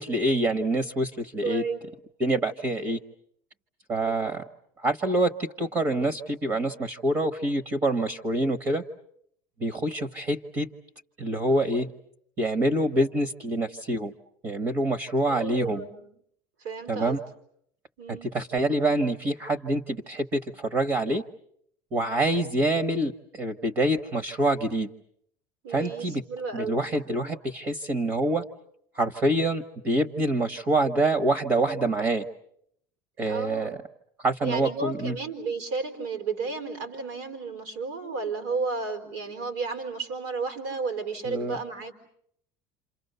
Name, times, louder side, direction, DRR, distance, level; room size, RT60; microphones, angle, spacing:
voice 1, 0.0-1.6 2.2-3.0 3.9-4.4 4.8-8.8 9.6-10.7 11.2-11.9 12.4-14.1 14.4-15.8 16.9-17.2 18.1-21.2 21.9-24.9 25.7-26.2 26.5-28.4 28.9-32.2 33.2-33.7 34.2-35.1 41.3-41.6, right 1 dB, 30° right, 11 dB, 1.2 m, -26 dB
voice 2, 1.4-1.8 3.9-4.2 15.3-16.1 16.6-17.2 18.0-18.3 25.6-26.8 33.3-33.7 34.4-42.0, right 4 dB, 85° right, 7 dB, 4.9 m, -33 dB
28.5 x 27.5 x 6.8 m, 0.69 s
cardioid pair, 170°, 9 cm